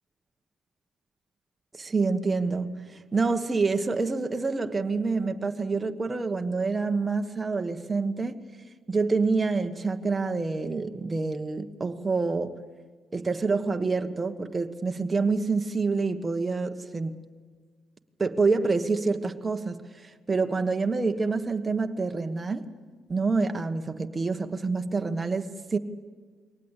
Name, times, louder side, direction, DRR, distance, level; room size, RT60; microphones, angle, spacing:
voice 1, 1.7-8.4 8.9-12.6 13.1-17.2 18.2-22.6 23.1-25.8, right 4 dB, 25° right, 1.3 m, -27 dB
22.0 x 18.5 x 8.3 m
supercardioid pair, 70°, 0 cm